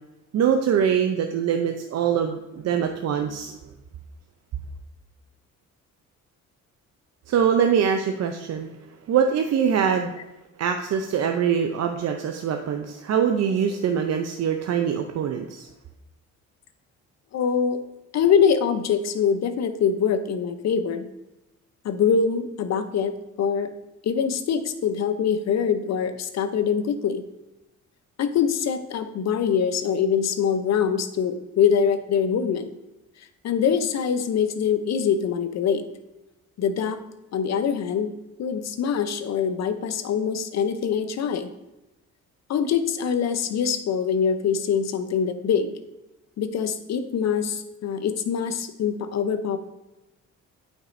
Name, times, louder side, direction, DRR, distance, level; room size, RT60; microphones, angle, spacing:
voice 1, 0.3-3.5 7.3-8.7 9.1-10.2 10.6-15.7, right 7 dB, 60° right, 5 dB, 0.6 m, -23 dB
voice 2, 17.3-17.8 18.1-21.1 21.8-23.7 24.0-27.2 28.2-32.7 33.4-35.8 36.6-37.0 37.3-38.1 38.4-41.5 42.5-45.8 46.4-49.6, left 7 dB, 60° left, 10 dB, 0.7 m, -24 dB
8.8 x 5.4 x 2.6 m, 0.96 s
cardioid pair, 90°, 30 cm